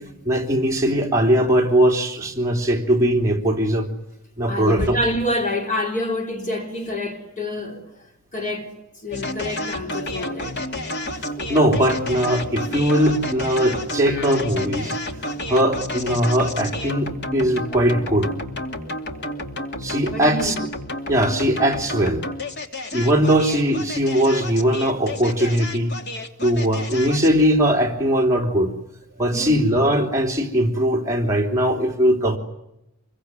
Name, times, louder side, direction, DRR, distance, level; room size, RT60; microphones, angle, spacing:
voice 1, 0.2-3.9 4.4-5.0 11.4-15.0 15.5-18.3 19.8-20.5 21.1-22.2 22.9-26.0 26.4-28.7 29.2-32.4, right 1 dB, 15° right, 3.2 m, -20 dB
voice 2, 4.5-7.9 8.3-10.6 18.8-19.4 19.8-20.6 29.1-29.6, left 1 dB, 40° left, 4.0 m, -28 dB
sound 1, 9.1-27.4, left 1 dB, 55° left, 2.7 m, -30 dB
26.5 x 23.0 x 9.6 m
head